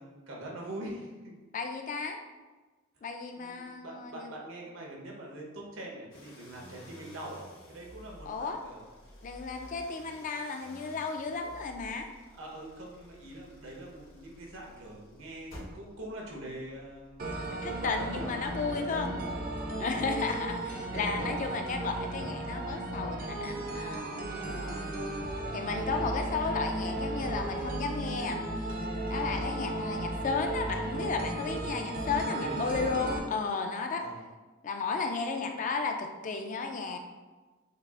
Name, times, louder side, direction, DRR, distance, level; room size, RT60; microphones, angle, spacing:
voice 1, 0.0-1.3 3.3-8.8 12.4-18.3 18.9-19.9 20.6-21.3 32.2-32.8 34.0-34.2, right 1 dB, 80° right, -2 dB, 1.0 m, -44 dB
voice 2, 1.5-2.2 3.0-4.3 8.2-8.6 9.2-12.1 17.6-19.1 19.8-24.9 25.5-28.4 29.1-34.0 34.6-37.0, left 4 dB, 40° left, 4 dB, 0.4 m, -34 dB
sound 1, 6.1-18.5, left 1 dB, 85° left, 1.1 m, -53 dB
sound 2, 17.2-33.2, right 1 dB, 45° right, 0.5 m, -35 dB
6.6 x 2.4 x 2.4 m, 1.3 s
head